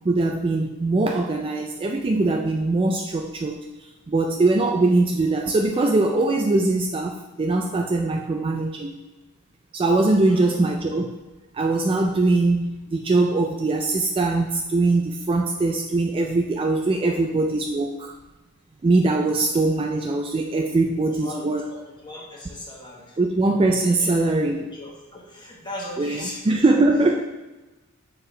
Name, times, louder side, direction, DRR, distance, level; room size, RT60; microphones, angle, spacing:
voice 1, 0.0-3.6 4.1-7.1 7.4-8.9 9.7-11.1 11.5-18.1 18.8-21.6 23.2-24.6 26.0-27.2, right 2 dB, 25° right, 2 dB, 0.3 m, -21 dB
voice 2, 10.2-10.5 17.0-17.3 19.5-19.6 21.1-23.2 23.8-24.1 24.6-26.6, left 1 dB, 20° left, -2 dB, 1.3 m, -39 dB
6.6 x 4.6 x 3.2 m, 1.1 s
head